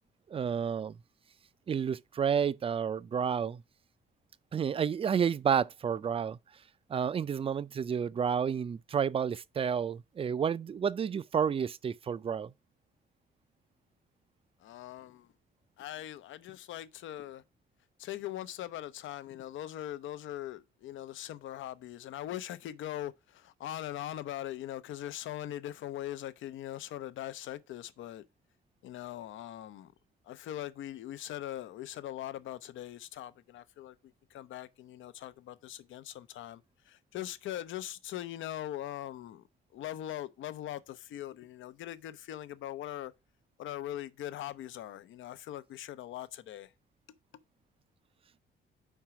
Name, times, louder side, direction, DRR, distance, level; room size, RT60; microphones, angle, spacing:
voice 1, 0.3-1.0 1.7-3.6 4.5-6.4 6.9-12.5, right 7 dB, 30° right, 0.4 m, -30 dB
voice 2, 14.6-15.3 15.8-17.4 18.0-28.2 28.8-29.9 30.2-34.0 34.3-39.4 39.7-43.1 43.6-46.7, left 12 dB, 75° left, 0.7 m, -41 dB
4.9 x 4.5 x 5.7 m
cardioid pair, 90°, 20 cm